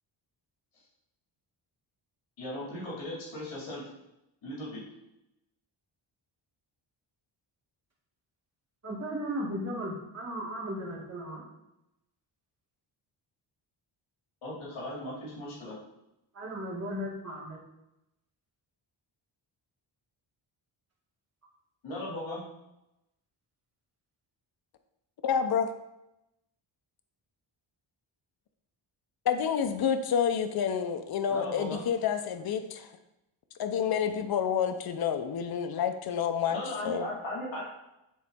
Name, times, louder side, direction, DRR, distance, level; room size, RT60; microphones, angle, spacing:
voice 1, 2.4-3.8 4.4-4.8 14.4-15.8 21.8-22.4 31.3-31.8 36.5-37.6, left 1 dB, 75° left, -5 dB, 2.5 m, -37 dB
voice 2, 8.8-11.4 16.3-17.6, equal, 35° right, -6 dB, 2.4 m, -36 dB
voice 3, 25.2-25.7 29.3-32.9 33.6-37.1, left 7 dB, 50° left, 7 dB, 0.6 m, -29 dB
9.3 x 4.0 x 3.5 m, 0.88 s
wide cardioid pair, 135°, 47 cm